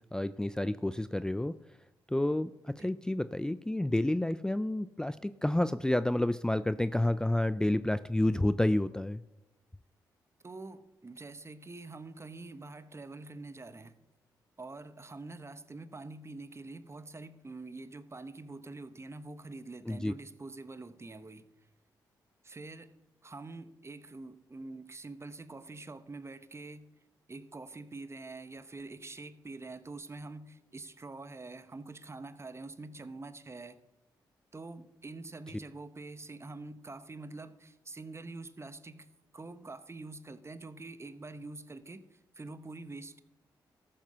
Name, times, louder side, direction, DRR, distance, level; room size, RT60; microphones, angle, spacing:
voice 1, 0.1-1.6 2.1-9.2 19.9-20.1, left 1 dB, 10° left, 15 dB, 0.4 m, -30 dB
voice 2, 10.4-13.9 14.6-21.4 22.4-22.9 23.2-26.9 27.3-33.8 34.5-39.1 39.3-42.1 42.3-43.2, right 3 dB, 30° right, 13 dB, 1.1 m, -45 dB
13.5 x 7.4 x 5.5 m, 1.0 s
supercardioid pair, 45°, 9 cm